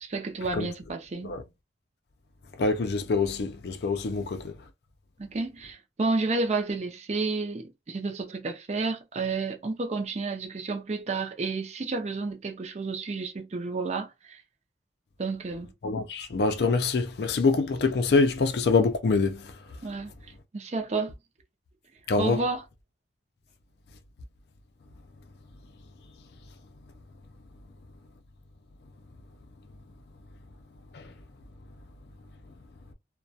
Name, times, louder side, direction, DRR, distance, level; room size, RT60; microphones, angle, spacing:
voice 1, 0.0-1.4 5.2-14.4 15.2-15.7 19.8-20.1 20.5-21.1 22.2-22.6, right 3 dB, 40° right, 0.4 m, -31 dB
voice 2, 2.6-4.6 15.8-19.5 22.1-22.4 30.9-31.1, left 4 dB, 65° left, 0.4 m, -25 dB
2.3 x 2.1 x 2.6 m
head